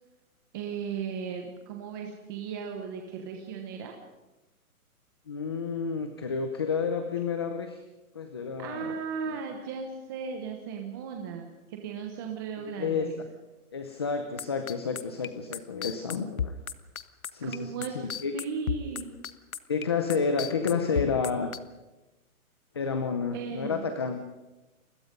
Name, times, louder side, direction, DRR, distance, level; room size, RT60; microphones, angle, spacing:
voice 1, 0.5-3.9 8.6-13.2 17.4-18.1 18.3-19.1 23.3-23.9, right 6 dB, 15° right, 2 dB, 1.1 m, -36 dB
voice 2, 5.3-7.8 8.1-8.9 9.3-9.4 12.6-13.3 13.7-16.6 17.3-18.3 19.7-21.5 22.7-24.2, left 5 dB, 20° left, 7 dB, 0.7 m, -30 dB
sound 1, 14.4-21.6, left 7 dB, 70° left, 1.4 m, -33 dB
30.0 x 21.5 x 5.4 m, 1.1 s
hypercardioid pair, 170°, 44 cm